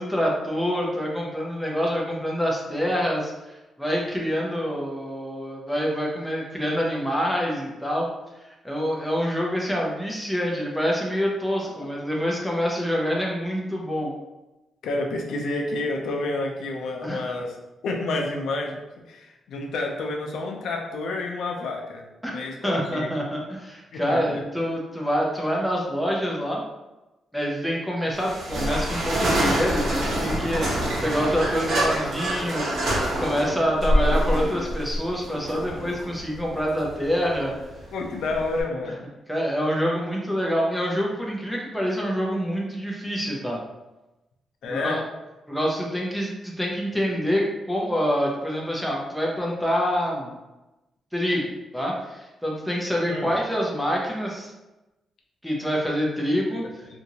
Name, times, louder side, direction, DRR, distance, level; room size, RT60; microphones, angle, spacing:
voice 1, 0.0-8.1 8.4-14.1 17.0-17.3 22.2-26.6 27.3-32.9 33.2-37.6 38.8-38.9 39.3-43.6 44.7-45.0 45.5-50.3 51.1-54.5 55.4-56.6, equal, ahead, -3 dB, 0.6 m, -26 dB
voice 2, 14.8-17.5 17.8-18.8 19.1-22.1 22.3-23.1 23.9-24.4 37.9-39.0 44.6-45.0 53.1-53.3, left 2 dB, 85° left, 1 dB, 0.5 m, -29 dB
sound 1, 28.1-38.6, equal, 65° right, 1.0 m, -26 dB
2.8 x 2.6 x 2.7 m, 1.0 s
cardioid pair, 140°, 0 cm